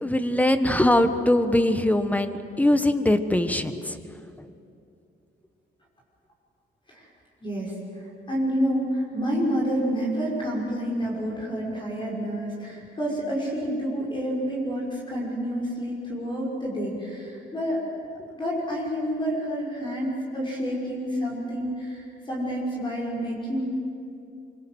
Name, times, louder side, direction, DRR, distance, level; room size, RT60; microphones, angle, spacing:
voice 1, 0.0-4.0, left 1 dB, 10° left, 9 dB, 1.3 m, -22 dB
voice 2, 7.4-17.8 18.3-23.7, equal, 25° left, -4 dB, 5.9 m, -29 dB
25.5 x 25.0 x 8.0 m, 2.6 s
cardioid pair, 135°, 20 cm